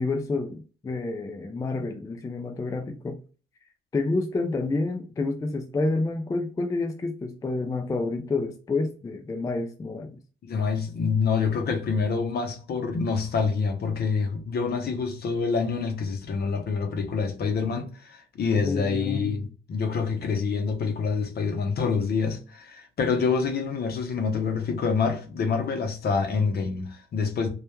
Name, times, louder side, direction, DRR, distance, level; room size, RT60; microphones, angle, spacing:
voice 1, 0.0-3.2 3.9-10.2 18.5-19.4, left 3 dB, 15° left, 0.3 m, -29 dB
voice 2, 10.4-27.5, left 5 dB, 55° left, 0.6 m, -26 dB
2.2 x 2.1 x 2.9 m
cardioid pair, 90°, 20 cm